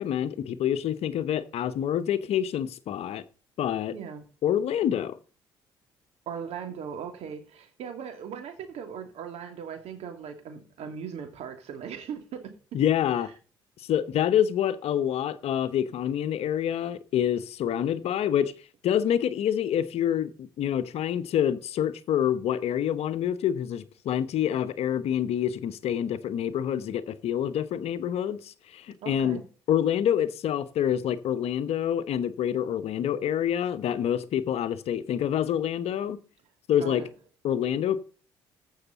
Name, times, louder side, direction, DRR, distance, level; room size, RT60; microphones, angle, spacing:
voice 1, 0.0-3.2 3.6-3.9 4.4-5.2 12.7-13.3 13.9-18.5 18.8-29.4 29.7-36.2 36.7-37.0 37.4-38.0, left 10 dB, 60° left, 0.9 m, -27 dB
voice 2, 3.9-4.3 6.3-12.8 29.0-29.4 36.8-37.1, right 7 dB, 60° right, 2.7 m, -39 dB
15.0 x 6.5 x 4.1 m
hypercardioid pair, 50°, 12 cm